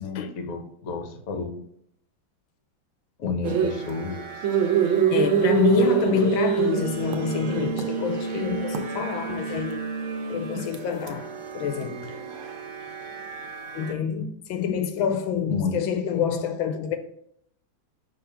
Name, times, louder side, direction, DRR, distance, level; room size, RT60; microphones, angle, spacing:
voice 1, 0.0-1.6 3.2-4.4 15.5-15.8, left 5 dB, 55° left, 1.1 m, -31 dB
sound 1, 3.4-13.9, right 7 dB, 75° right, 1.5 m, -27 dB
voice 2, 5.1-9.9 10.3-12.3 13.7-17.0, left 7 dB, 80° left, 1.4 m, -27 dB
5.9 x 3.4 x 5.6 m
omnidirectional pair, 2.2 m